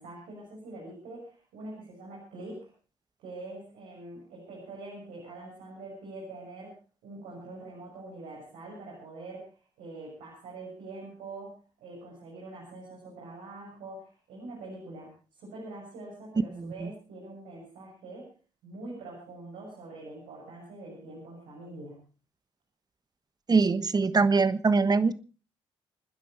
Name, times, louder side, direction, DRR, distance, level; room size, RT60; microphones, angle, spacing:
voice 1, 0.0-2.7 3.2-6.8 7.0-18.3 18.6-22.0, right 2 dB, 80° right, -3 dB, 7.1 m, -44 dB
voice 2, 16.6-16.9 23.5-25.1, right 4 dB, 30° right, 15 dB, 1.2 m, -23 dB
28.5 x 10.0 x 4.4 m, 0.36 s
hypercardioid pair, 55°, 13 cm